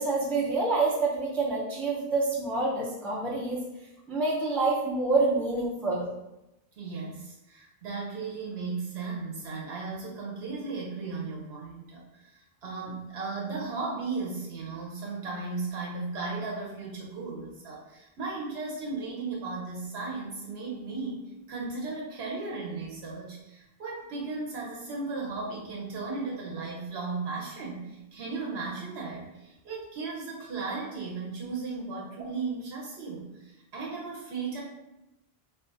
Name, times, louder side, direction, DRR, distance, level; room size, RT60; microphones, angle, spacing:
voice 1, 0.0-3.6 4.1-6.1, right 3 dB, 5° left, -5 dB, 0.4 m, -27 dB
voice 2, 6.8-34.6, right 3 dB, 80° right, -3 dB, 0.9 m, -36 dB
2.4 x 2.4 x 3.8 m, 0.92 s
omnidirectional pair, 1.1 m